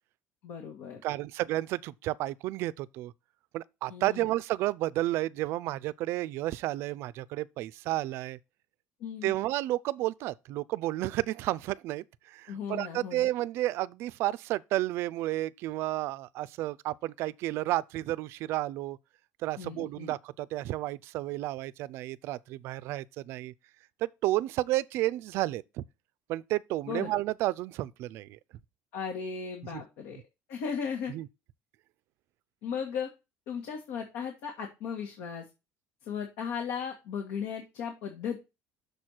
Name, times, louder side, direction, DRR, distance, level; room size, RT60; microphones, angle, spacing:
voice 1, 0.4-1.0 3.9-4.3 9.0-9.3 12.5-13.3 19.6-20.1 26.9-27.1 28.9-30.2 30.5-31.1 32.6-33.1 33.5-35.5 36.0-38.4, left 6 dB, 80° left, 1.7 m, -36 dB
voice 2, 1.0-3.1 3.5-8.4 9.2-19.0 19.4-23.5 24.0-25.8 26.3-28.4 29.7-29.8 31.1-31.3, right 16 dB, 55° right, 0.4 m, -32 dB
6.6 x 4.4 x 6.3 m
cardioid pair, 180°, 5 cm